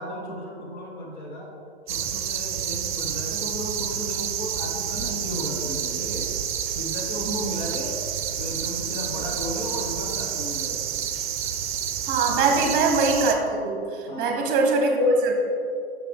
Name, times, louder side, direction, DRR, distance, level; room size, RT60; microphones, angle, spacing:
voice 1, 0.0-1.5 1.9-6.3 6.7-8.0 8.4-10.9 12.3-12.8 14.1-14.5, left 1 dB, 45° left, -2 dB, 1.2 m, -35 dB
sound 1, 1.9-13.4, right 9 dB, 50° right, 0.5 m, -29 dB
voice 2, 12.0-15.3, right 3 dB, 25° right, 2 dB, 1.1 m, -22 dB
5.7 x 5.7 x 3.7 m, 2.5 s
figure-of-eight pair, 115°, 32 cm